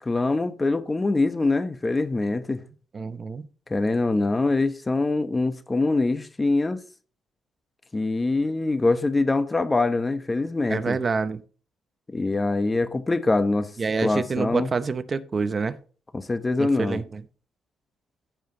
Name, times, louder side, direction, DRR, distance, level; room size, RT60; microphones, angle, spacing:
voice 1, 0.0-2.6 3.7-6.8 7.9-11.0 12.1-13.7 14.0-14.7 16.1-17.0, left 3 dB, 20° left, 1.1 m, -24 dB
voice 2, 2.9-3.4 10.7-11.4 13.8-15.8 16.6-17.2, right 4 dB, 35° right, 0.8 m, -27 dB
15.0 x 5.1 x 3.8 m
cardioid pair, 90°, 0 cm